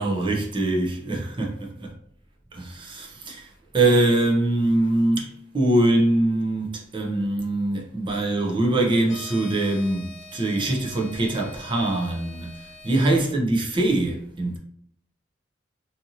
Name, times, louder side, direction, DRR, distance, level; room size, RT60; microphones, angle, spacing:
voice 1, 0.0-1.9 2.5-3.5 3.7-12.5 12.8-14.6, right 2 dB, 25° right, 0.5 m, -23 dB
sound 1, 9.0-13.1, left 2 dB, 40° left, 0.8 m, -44 dB
2.7 x 2.5 x 2.7 m
head